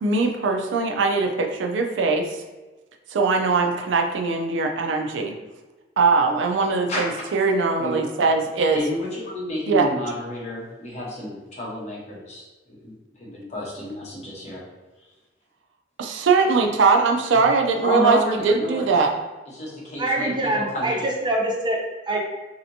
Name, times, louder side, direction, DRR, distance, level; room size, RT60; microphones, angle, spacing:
voice 1, 0.0-2.3 3.1-5.4 6.0-8.8 9.7-9.9 16.0-19.1, right 4 dB, 80° right, 3 dB, 0.4 m, -21 dB
voice 2, 6.9-7.2 7.8-8.1 8.7-14.6 17.8-18.9 19.5-21.0, left 1 dB, 40° left, -5 dB, 1.0 m, -30 dB
voice 3, 20.0-22.2, right 1 dB, 25° right, -1 dB, 0.5 m, -24 dB
3.2 x 2.8 x 2.6 m, 1.2 s
head